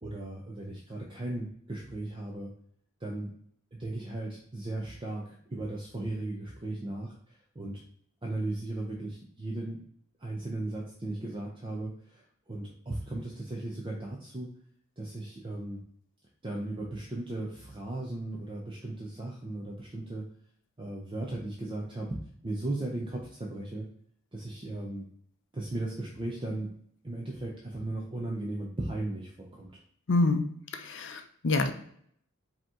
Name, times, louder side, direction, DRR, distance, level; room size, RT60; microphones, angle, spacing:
voice 1, 0.0-2.5 3.0-3.3 3.7-7.8 8.2-9.8 10.2-14.5 15.0-15.8 16.4-20.2 20.8-22.1 22.4-23.9 24.3-25.0 25.5-26.7 27.0-29.8, right 2 dB, 25° right, -1 dB, 0.5 m, -36 dB
voice 2, 30.1-30.5 30.7-31.7, left 2 dB, 55° left, 7 dB, 0.5 m, -26 dB
5.1 x 2.9 x 3.6 m, 0.64 s
head